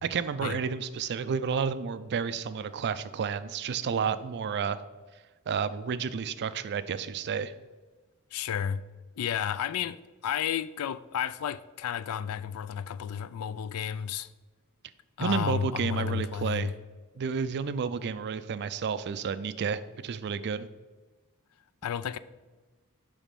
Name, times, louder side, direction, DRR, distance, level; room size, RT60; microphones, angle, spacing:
voice 1, 0.0-4.8 5.5-7.5 15.2-16.7 17.2-20.7, right 6 dB, 50° right, 0.4 m, -31 dB
voice 2, 8.3-8.8 9.2-14.3 15.2-16.7 21.8-22.2, left 8 dB, 70° left, 0.3 m, -32 dB
7.2 x 5.0 x 5.3 m
head